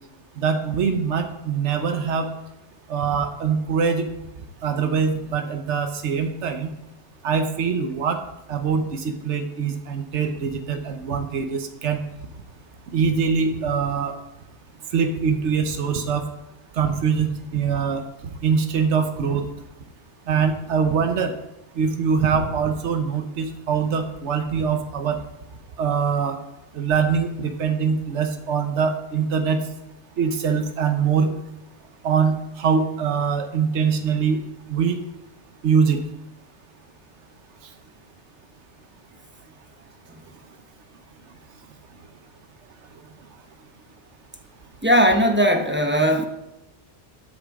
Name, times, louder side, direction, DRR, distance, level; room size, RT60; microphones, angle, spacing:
voice 1, 0.4-2.3 2.9-4.1 4.6-6.7 7.2-8.2 8.5-12.0 12.9-14.2 14.9-16.2 16.8-19.4 20.3-21.3 21.8-25.2 25.8-26.4 26.7-29.6 30.2-31.3 32.0-34.4 34.7-35.0 35.6-36.0, right 6 dB, 75° right, 6 dB, 1.2 m, -23 dB
voice 2, 44.8-46.2, equal, 10° right, 5 dB, 0.9 m, -18 dB
13.5 x 8.3 x 3.7 m, 0.92 s
omnidirectional pair, 1.2 m